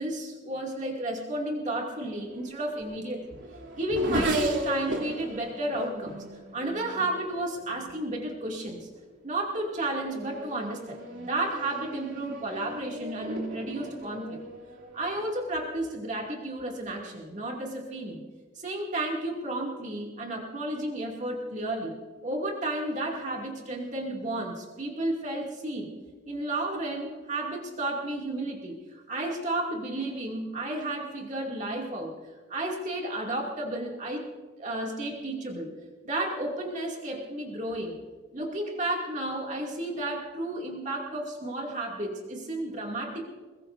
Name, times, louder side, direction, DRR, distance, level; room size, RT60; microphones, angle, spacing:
voice 1, 0.0-3.2 3.8-6.2 6.5-8.9 9.2-14.4 14.9-18.2 18.5-25.9 26.3-32.1 32.5-34.3 34.6-35.7 36.0-38.0 38.3-43.3, right 1 dB, 35° right, -1 dB, 2.5 m, -32 dB
Race car auto racing / Accelerating revving vroom, 2.2-8.1 8.9-9.3 9.7-15.6, right 1 dB, 70° right, 3.2 m, -35 dB
23.0 x 22.5 x 2.7 m, 1.5 s
head